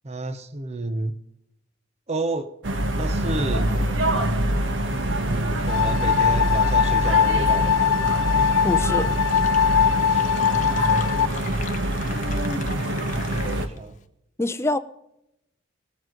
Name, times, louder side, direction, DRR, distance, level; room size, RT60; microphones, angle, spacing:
voice 1, 0.0-1.1 2.1-2.6 2.9-3.7 4.9-7.8 10.0-10.6 12.1-12.7 13.4-14.0, right 2 dB, 35° right, 9 dB, 0.9 m, -31 dB
sound 1, 2.6-13.7, right 1 dB, 75° right, 1.2 m, -25 dB
sound 2, 5.7-11.3, left 8 dB, 85° left, 0.4 m, -21 dB
voice 2, 8.6-9.1 14.4-14.8, left 2 dB, 15° left, 10 dB, 0.6 m, -24 dB
Fill (with liquid), 8.8-8.9 9.1-13.9, left 7 dB, 40° left, 1.0 m, -40 dB
20.5 x 7.8 x 3.8 m, 0.82 s
head